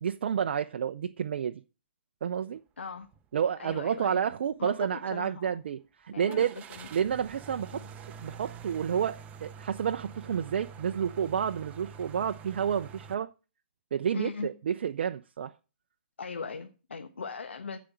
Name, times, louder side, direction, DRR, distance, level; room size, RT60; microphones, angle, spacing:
voice 1, 0.0-1.6 2.2-2.6 3.3-6.6 6.9-13.3 13.9-15.5, right 8 dB, 65° right, 0.6 m, -30 dB
voice 2, 2.8-3.1 3.6-4.2 4.6-5.6 6.1-6.9 7.7-7.9 14.1-14.5 16.2-17.8, left 5 dB, 85° left, 1.3 m, -39 dB
sound 1, 3.0-3.3 3.7-3.8 6.3-13.1, right 6 dB, 20° right, 1.0 m, -46 dB
15.0 x 5.1 x 8.4 m
hypercardioid pair, 135°, 6 cm